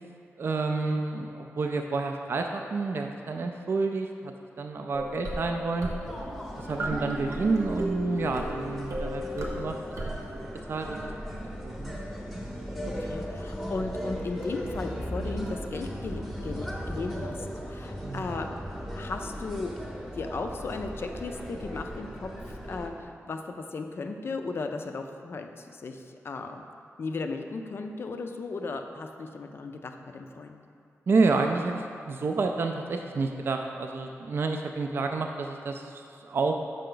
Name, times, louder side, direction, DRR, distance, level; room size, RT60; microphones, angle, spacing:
voice 1, 0.4-5.9 6.6-9.8 10.3-11.1 11.6-12.0 18.0-18.3 31.1-36.5, right 3 dB, 50° right, 3 dB, 0.3 m, -29 dB
sound 1, 4.9-10.4, equal, 80° right, 0.9 m, -35 dB
sound 2, 6.0-22.9, equal, ahead, 0.8 m, -37 dB
voice 2, 13.0-17.4 17.7-18.5 18.9-19.7 20.1-26.6 27.0-30.6, left 3 dB, 50° left, 5 dB, 0.4 m, -36 dB
5.5 x 5.0 x 3.8 m, 2.4 s
wide cardioid pair, 110°, 5 cm